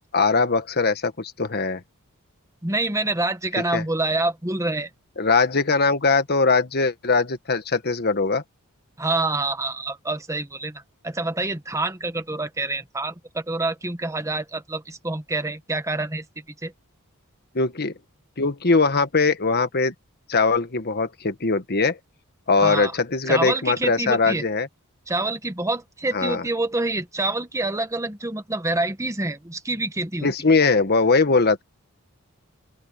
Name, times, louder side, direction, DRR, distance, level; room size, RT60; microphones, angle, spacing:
voice 1, 0.1-1.8 3.7-3.8 5.2-8.4 17.5-17.9 18.4-19.9 20.3-22.0 22.5-24.7 26.1-26.4 30.2-31.6, left 4 dB, 50° left, 1.5 m, -21 dB
voice 2, 2.6-4.9 9.0-16.7 22.6-22.9 23.3-24.4 25.1-30.3, right 2 dB, 15° right, 1.4 m, -27 dB
open air
head